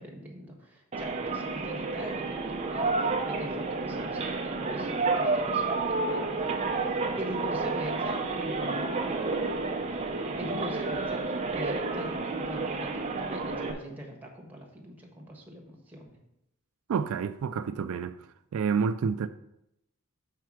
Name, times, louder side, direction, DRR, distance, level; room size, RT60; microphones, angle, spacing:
voice 1, 0.0-6.6 6.9-9.3 10.4-16.2, equal, 10° right, 1.2 m, -42 dB
sound 1, 0.9-13.7, right 3 dB, 30° right, 0.6 m, -30 dB
voice 2, 16.9-18.2 18.5-19.3, right 6 dB, 70° right, 0.3 m, -28 dB
5.7 x 4.5 x 6.2 m
head